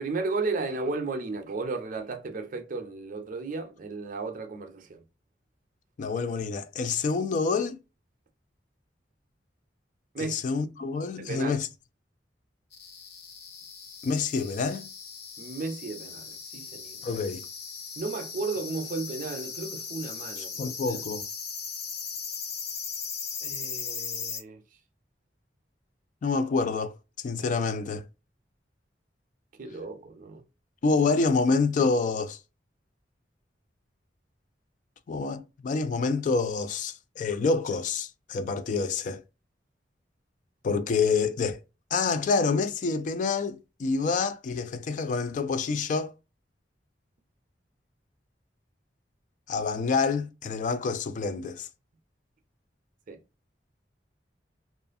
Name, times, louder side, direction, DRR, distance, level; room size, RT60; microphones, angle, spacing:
voice 1, 0.0-5.0 10.1-10.4 11.2-11.6 15.4-17.0 18.0-21.0 23.4-24.6 29.6-30.4 53.1-53.2, right 3 dB, 50° right, 0.5 m, -34 dB
voice 2, 6.0-7.8 10.2-11.7 14.0-14.9 17.0-17.4 20.6-21.3 26.2-28.1 30.8-32.4 35.1-39.2 40.6-41.6 41.9-46.1 49.5-51.7, left 4 dB, 45° left, 0.3 m, -27 dB
sound 1, 12.7-24.4, left 6 dB, 65° left, 0.7 m, -38 dB
2.4 x 2.4 x 2.4 m
head